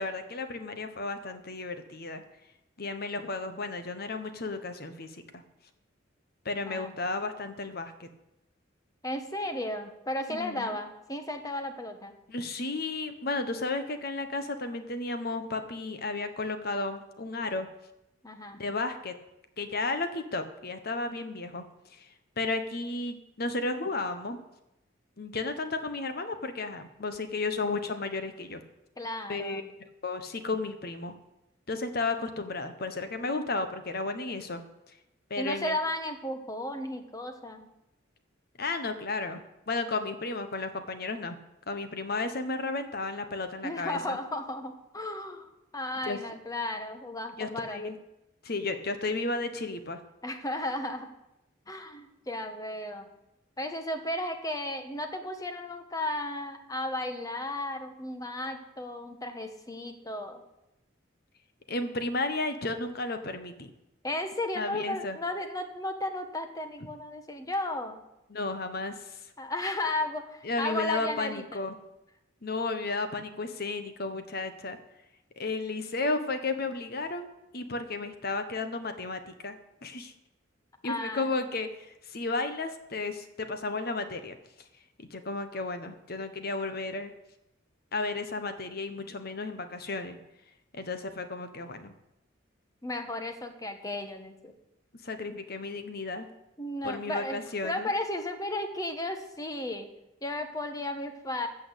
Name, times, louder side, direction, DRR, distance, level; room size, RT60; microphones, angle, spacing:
voice 1, 0.0-2.2 2.8-5.2 6.4-8.1 10.3-10.8 12.3-17.7 18.5-19.1 19.6-21.6 21.9-22.1 22.4-24.4 25.2-28.6 29.3-29.6 30.0-31.1 31.7-34.6 35.3-35.8 38.6-41.4 41.7-44.2 46.0-46.2 47.4-47.9 48.4-50.0 61.7-63.7 64.6-65.2 68.3-69.2 70.4-71.8 72.4-74.8 75.4-80.1 80.8-84.4 85.0-87.1 87.9-90.2 90.7-91.9 95.0-96.3 96.8-97.9, left 3 dB, 50° left, 9 dB, 1.2 m, -33 dB
voice 2, 9.0-12.1 18.2-18.6 29.0-29.7 35.4-37.7 43.6-48.0 50.2-51.1 51.7-53.1 53.6-60.4 64.0-68.0 69.4-71.6 80.8-81.3 92.8-94.5 96.6-99.9 100.2-101.5, left 1 dB, 20° left, 6 dB, 1.3 m, -34 dB
15.0 x 6.3 x 8.1 m, 0.88 s
head